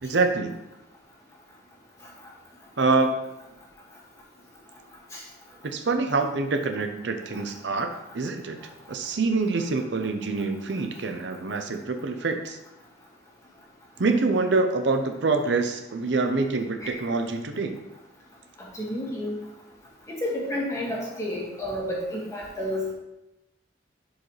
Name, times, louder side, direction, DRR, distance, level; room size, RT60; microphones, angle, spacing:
voice 1, 0.0-0.6 2.8-3.1 5.6-8.6 8.9-12.6 14.0-17.8, right 3 dB, 70° right, 5 dB, 0.7 m, -25 dB
voice 2, 18.7-19.3 20.2-22.9, left 1 dB, 15° left, -4 dB, 1.9 m, -30 dB
11.5 x 4.8 x 3.2 m, 0.92 s
head